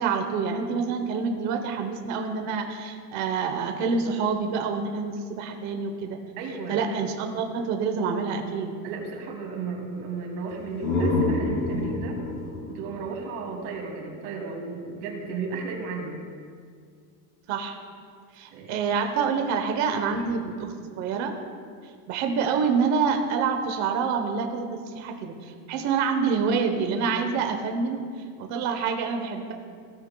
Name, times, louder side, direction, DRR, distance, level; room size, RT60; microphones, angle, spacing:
voice 1, 0.0-6.2 6.7-8.7 17.5-17.8 18.3-21.3 22.1-28.0 28.4-29.5, right 5 dB, 35° right, 5 dB, 0.9 m, -27 dB
voice 2, 6.4-6.8 8.8-12.2 12.7-16.2 18.5-18.7 20.1-20.3, right 4 dB, 70° right, 0 dB, 2.6 m, -34 dB
sound 1, 10.5-14.2, left 2 dB, 80° left, 2.0 m, -28 dB
16.5 x 9.2 x 2.2 m, 2.1 s
cardioid pair, 180°, 48 cm